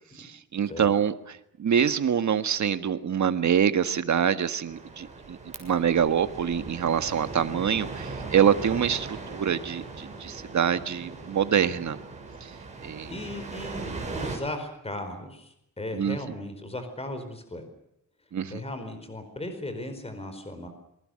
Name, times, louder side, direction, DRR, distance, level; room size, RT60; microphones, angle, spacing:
voice 1, 0.2-12.0 12.8-13.1 15.9-16.2 18.3-18.6, right 8 dB, 55° right, 10 dB, 1.7 m, -25 dB
sound 1, 4.6-14.4, right 3 dB, 20° right, 7.2 m, -39 dB
voice 2, 13.1-17.6 18.5-20.7, left 1 dB, 15° left, 8 dB, 4.6 m, -37 dB
28.0 x 23.5 x 6.5 m, 0.77 s
wide cardioid pair, 165°, 35 cm